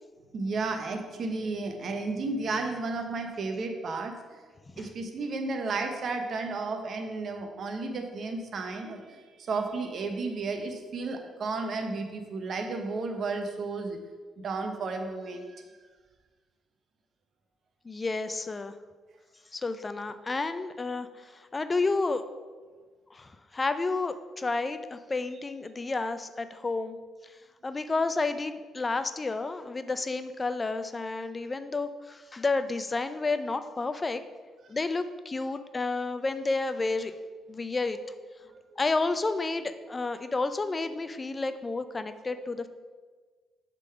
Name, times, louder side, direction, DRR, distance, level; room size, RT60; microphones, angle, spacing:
voice 1, 0.3-4.4 4.8-14.0 14.4-15.6 38.0-38.1 38.5-38.8 40.0-40.2 42.3-42.5, right 3 dB, 55° right, 5 dB, 1.0 m, -33 dB
voice 2, 17.8-18.7 19.5-22.2 23.1-27.0 27.2-27.3 27.6-34.2 34.7-37.1 37.5-38.0 38.8-42.7, left 3 dB, 25° left, 11 dB, 0.4 m, -31 dB
6.9 x 3.8 x 5.7 m, 1.4 s
cardioid pair, 90°, 0 cm